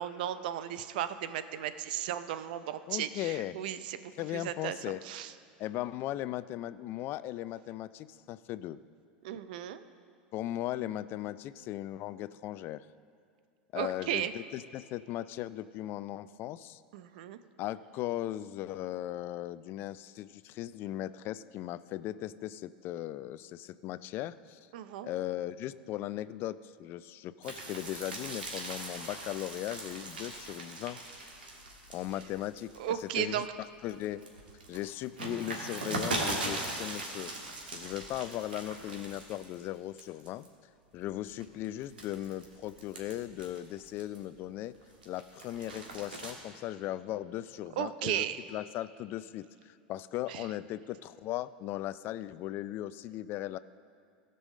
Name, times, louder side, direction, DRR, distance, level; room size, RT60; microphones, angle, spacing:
voice 1, 0.0-4.8 5.0-5.3 9.2-9.8 13.7-14.3 16.9-17.4 24.7-25.1 32.8-33.5 47.8-48.4 50.3-50.5, right 11 dB, 70° right, 12 dB, 0.5 m, -35 dB
voice 2, 2.9-3.6 4.2-5.0 5.6-8.8 10.3-12.9 13.7-16.8 17.6-24.6 25.0-31.0 31.9-33.5 33.8-34.2 34.7-37.3 37.7-40.5 40.9-44.7 45.1-48.2 48.5-53.6, left 14 dB, 50° left, 16 dB, 0.4 m, -38 dB
sound 1, 27.4-33.3 33.8-39.7 40.0-40.5 41.0-44.3 44.7-46.3, right 2 dB, 90° right, 1.7 m, -40 dB
15.5 x 5.5 x 6.4 m, 2.2 s
hypercardioid pair, 90°, 5 cm